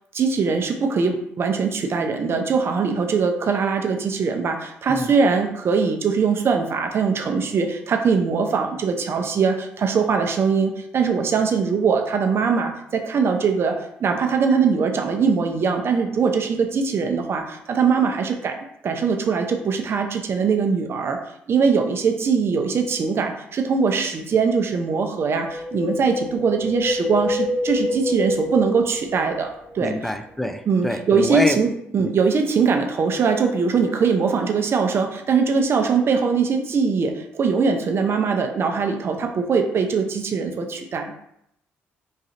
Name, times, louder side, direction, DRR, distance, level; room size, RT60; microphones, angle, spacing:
voice 1, 0.1-18.6 18.8-21.2 21.5-30.1 30.7-41.2, right 5 dB, 50° right, 5 dB, 0.5 m, -21 dB
Wind, 25.4-29.8 30.0-30.1, left 1 dB, 45° left, 1.4 m, -27 dB
voice 2, 29.8-31.6 32.0-32.1, left 1 dB, 5° left, 6 dB, 0.3 m, -25 dB
3.1 x 2.4 x 2.7 m, 0.76 s
supercardioid pair, 65°, 5 cm